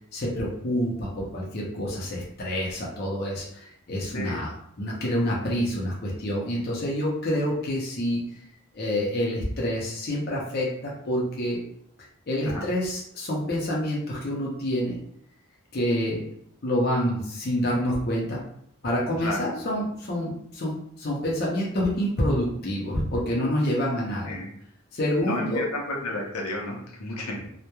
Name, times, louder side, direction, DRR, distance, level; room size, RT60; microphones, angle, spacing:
voice 1, 0.1-8.2 8.7-11.6 12.3-15.0 15.7-16.3 16.6-18.4 18.8-24.4 24.9-25.6, equal, 45° left, -4 dB, 0.5 m, -27 dB
voice 2, 25.2-27.5, left 1 dB, 90° left, -1 dB, 0.6 m, -32 dB
2.9 x 2.1 x 2.2 m, 0.69 s
head